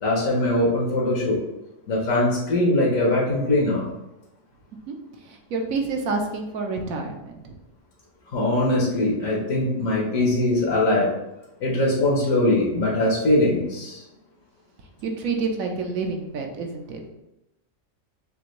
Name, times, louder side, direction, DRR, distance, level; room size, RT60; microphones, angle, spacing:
voice 1, 0.0-1.4 1.9-3.9 8.3-11.1 11.6-14.0, left 1 dB, 85° left, -3 dB, 1.5 m, -21 dB
voice 2, 5.2-7.6 15.0-17.0, right 4 dB, 85° right, 3 dB, 1.2 m, -28 dB
6.6 x 2.6 x 3.1 m, 0.92 s
omnidirectional pair, 1.4 m